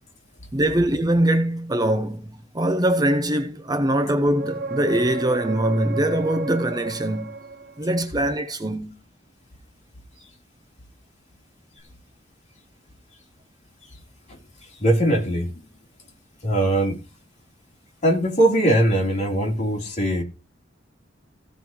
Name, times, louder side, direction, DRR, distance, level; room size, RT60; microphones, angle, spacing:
voice 1, 0.5-7.3 7.8-9.0, right 1 dB, 20° right, 0.8 m, -22 dB
sound 1, 4.3-8.1 11.8-11.9, right 3 dB, 55° right, 1.4 m, -32 dB
voice 2, 14.8-15.5 16.4-17.0 18.0-20.2, right 1 dB, 40° left, 3.2 m, -20 dB
15.5 x 5.3 x 4.4 m
head